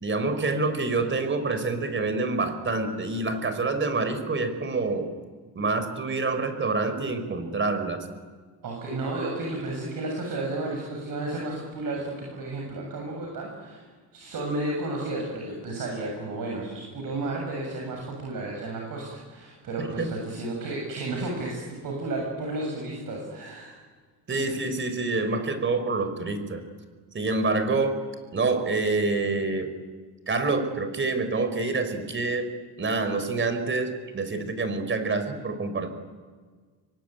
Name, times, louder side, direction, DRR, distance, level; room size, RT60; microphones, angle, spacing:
voice 1, 0.0-5.1 5.5-8.0 20.0-20.1 24.3-26.6 27.1-28.0 28.3-29.7 30.3-32.5 32.8-35.9, right 3 dB, 30° right, 10 dB, 4.7 m, -27 dB
voice 2, 8.6-23.7 24.3-24.5, right 2 dB, 55° right, 0 dB, 7.5 m, -32 dB
27.0 x 23.5 x 9.3 m, 1.5 s
cardioid pair, 115°, 41 cm